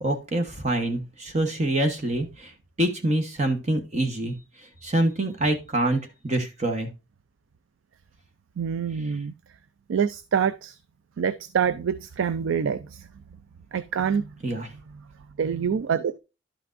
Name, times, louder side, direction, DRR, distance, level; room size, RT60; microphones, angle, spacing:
voice 1, 0.0-2.5 2.8-6.9 14.4-14.7, right 1 dB, 35° right, 1.0 m, -26 dB
voice 2, 8.6-9.3 9.9-10.8 11.2-13.1 13.7-14.3 15.4-16.2, right 7 dB, 85° right, 0.4 m, -26 dB
11.5 x 5.9 x 2.5 m
head